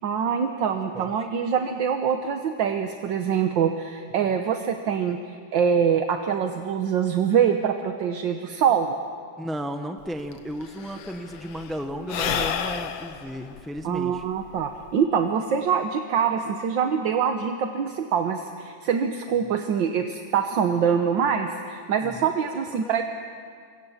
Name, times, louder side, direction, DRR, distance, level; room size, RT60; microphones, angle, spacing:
voice 1, 0.0-5.2 5.5-9.0 13.8-23.0, right 7 dB, 70° right, 5 dB, 1.8 m, -24 dB
voice 2, 0.9-1.3 9.4-14.2 22.0-22.3 22.5-23.0, equal, ahead, 5 dB, 0.5 m, -34 dB
Sigh / Breathing, 10.0-10.1 10.3-15.0, left 8 dB, 75° left, 1.8 m, -31 dB
27.0 x 25.0 x 7.2 m, 2.1 s
omnidirectional pair, 2.1 m